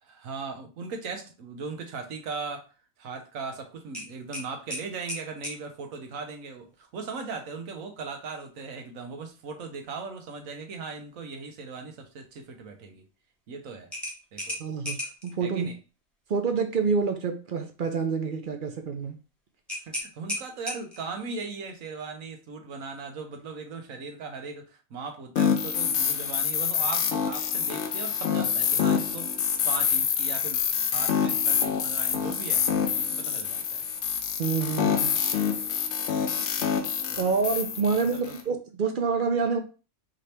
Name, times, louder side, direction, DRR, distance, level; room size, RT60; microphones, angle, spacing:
voice 1, 0.0-2.7 3.0-13.0 13.5-13.9 14.3-14.6 15.4-15.8 19.8-32.7 32.9-33.8 34.7-35.2 37.1-37.3 37.9-38.4, right 4 dB, 90° right, 1.3 m, -38 dB
sound 1, 3.9-5.6 8.2-8.5 8.9-9.0 13.9-15.3 19.7-21.1, left 1 dB, ahead, 0.9 m, -35 dB
voice 2, 14.6-15.0 15.2-15.7 16.3-19.2 34.4-35.2 36.4-36.5 37.2-39.6, right 5 dB, 50° right, 0.7 m, -27 dB
sound 2, 25.4-38.4, left 7 dB, 65° left, 0.8 m, -26 dB
5.0 x 2.8 x 3.3 m
omnidirectional pair, 1.4 m